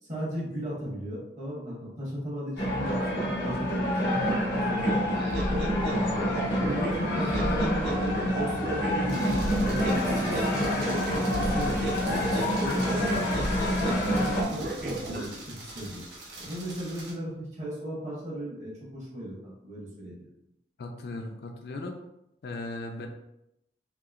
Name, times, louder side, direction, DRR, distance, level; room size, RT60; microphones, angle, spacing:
voice 1, 0.0-5.0 5.5-5.9 6.2-6.3 6.6-12.2 12.6-16.0 16.4-20.2, equal, 40° right, -5 dB, 1.1 m, -36 dB
sound 1, 2.6-14.4, left 1 dB, 90° left, 0.8 m, -28 dB
sound 2, 4.8-15.3, right 1 dB, 60° right, 0.5 m, -33 dB
sound 3, 9.1-17.1, right 2 dB, 85° right, 0.8 m, -45 dB
voice 2, 20.8-21.9 22.4-23.1, left 2 dB, 65° left, 4 dB, 0.4 m, -37 dB
2.9 x 2.8 x 2.4 m, 0.83 s
head